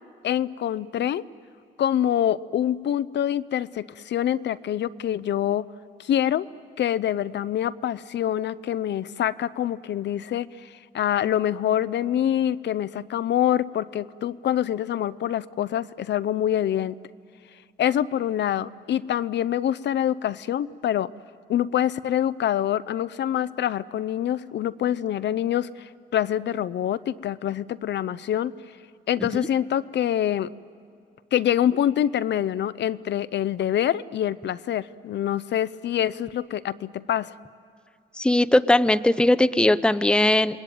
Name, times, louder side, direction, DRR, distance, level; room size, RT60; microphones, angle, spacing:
voice 1, 0.2-1.2 1.8-5.7 6.0-6.5 6.8-17.0 17.8-21.1 21.5-28.5 29.1-30.5 31.3-37.4, left 11 dB, 60° left, 17 dB, 0.6 m, -25 dB
voice 2, 38.2-40.6, left 1 dB, 5° left, 11 dB, 0.7 m, -19 dB
28.0 x 21.0 x 9.2 m, 2.4 s
cardioid pair, 90°, 20 cm